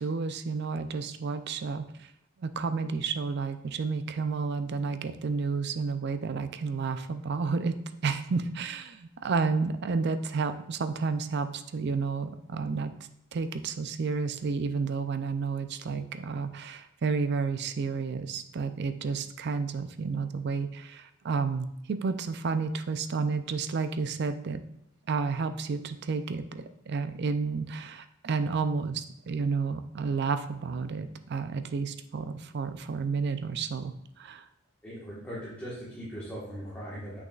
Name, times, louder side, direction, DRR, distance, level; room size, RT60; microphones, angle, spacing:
voice 1, 0.0-2.1 2.4-7.8 8.0-12.9 13.3-24.6 25.1-34.4, right 4 dB, 55° right, 10 dB, 0.4 m, -31 dB
voice 2, 34.8-37.2, equal, 10° left, -9 dB, 1.4 m, -39 dB
7.9 x 6.1 x 2.4 m, 0.74 s
head